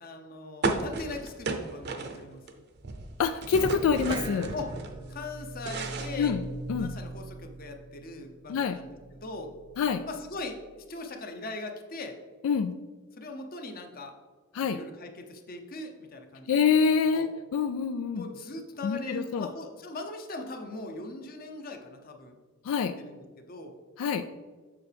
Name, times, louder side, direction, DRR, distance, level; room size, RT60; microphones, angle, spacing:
voice 1, 0.0-2.4 4.5-4.8 5.1-6.4 6.8-8.9 9.2-9.5 10.1-12.2 13.2-14.2 14.6-16.6 17.1-17.3 18.2-22.4 22.8-23.7, left 2 dB, 45° left, 5 dB, 0.8 m, -40 dB
sound 1, 0.6-2.5 2.8-4.9 5.3-6.9, right 3 dB, 50° right, 0.7 m, -33 dB
voice 2, 3.2-4.5 6.2-6.4 6.7-7.0 8.5-8.8 9.8-10.0 12.4-12.7 14.5-14.8 16.5-18.2 18.8-19.5 22.6-22.9 24.0-24.2, left 6 dB, 90° left, 10 dB, 0.3 m, -26 dB
sound 2, 4.1-10.8, right 2 dB, 20° right, 0.4 m, -42 dB
6.9 x 6.7 x 3.4 m, 1.4 s
head